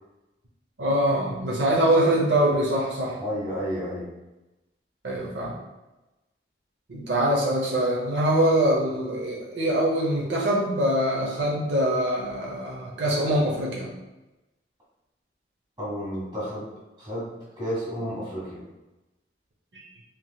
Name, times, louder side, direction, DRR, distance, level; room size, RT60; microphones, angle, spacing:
voice 1, 0.8-3.2 5.0-5.5 6.9-13.9 19.7-19.8, right 1 dB, 85° right, -3 dB, 0.7 m, -23 dB
voice 2, 3.2-4.1 15.8-16.7 17.0-18.6, equal, 25° right, -8 dB, 1.4 m, -31 dB
3.5 x 2.8 x 2.3 m, 1.0 s
head